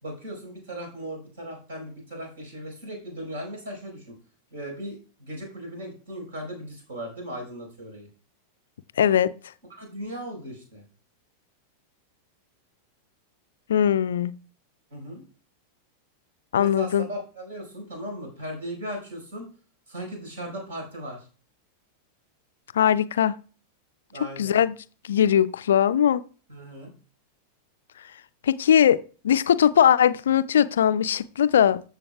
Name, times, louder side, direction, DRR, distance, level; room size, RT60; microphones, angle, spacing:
voice 1, 0.0-4.2 4.5-8.1 9.7-10.8 14.9-15.2 16.6-19.5 19.9-21.3 24.1-24.6 26.5-26.9, equal, 65° right, 4.6 m, -37 dB
voice 2, 9.0-9.3 13.7-14.3 16.5-17.1 22.7-23.4 24.4-24.7 25.0-26.2 28.4-29.0 29.2-31.8, left 9 dB, 65° left, 0.3 m, -20 dB
13.5 x 6.9 x 2.3 m
figure-of-eight pair, 90°, 0 cm